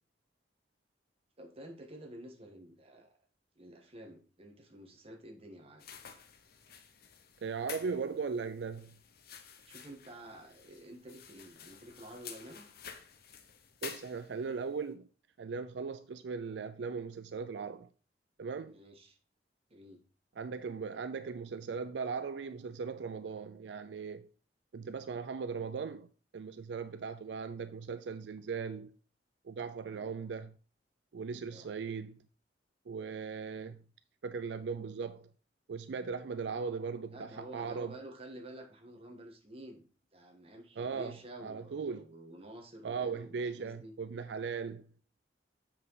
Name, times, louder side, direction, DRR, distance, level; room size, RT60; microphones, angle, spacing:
voice 1, 1.4-3.2 3.5-5.8 9.6-12.7 18.7-19.2 19.7-20.0 25.0-25.1 27.2-27.3 29.9-30.1 31.5-31.7 33.5-33.8 37.1-44.0, right 1 dB, 35° right, 1.5 m, -50 dB
sound 1, 5.8-14.6, left 7 dB, 60° left, 0.9 m, -51 dB
voice 2, 7.4-9.0 13.8-15.1 15.4-17.9 18.4-18.7 20.4-24.3 24.7-28.9 29.4-30.5 31.1-32.2 32.9-33.8 34.2-35.3 35.7-37.9 40.8-41.2 41.4-42.0 42.8-44.9, right 5 dB, 80° right, 0.4 m, -38 dB
7.4 x 5.9 x 4.0 m
head